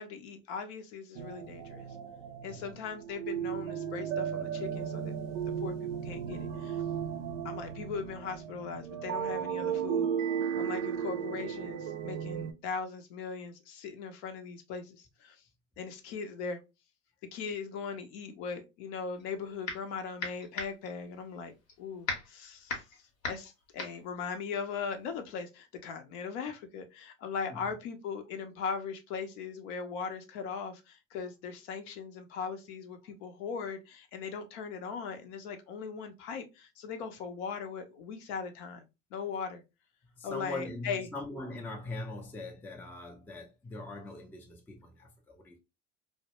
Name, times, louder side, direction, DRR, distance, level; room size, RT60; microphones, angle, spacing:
voice 1, 0.0-1.8 2.4-5.1 5.4-6.8 7.4-10.1 10.6-15.4 15.8-16.6 17.3-22.8 23.3-38.9 39.1-39.6 40.2-41.1, left 5 dB, 65° left, 0.7 m, -39 dB
sound 1, 1.2-12.5, right 8 dB, 75° right, 0.5 m, -35 dB
sound 2, 19.1-19.9 20.2-25.2, left 3 dB, 90° left, 0.9 m, -38 dB
voice 2, 40.2-45.6, left 2 dB, 5° left, 0.4 m, -42 dB
2.1 x 2.0 x 2.8 m
hypercardioid pair, 85°, 39 cm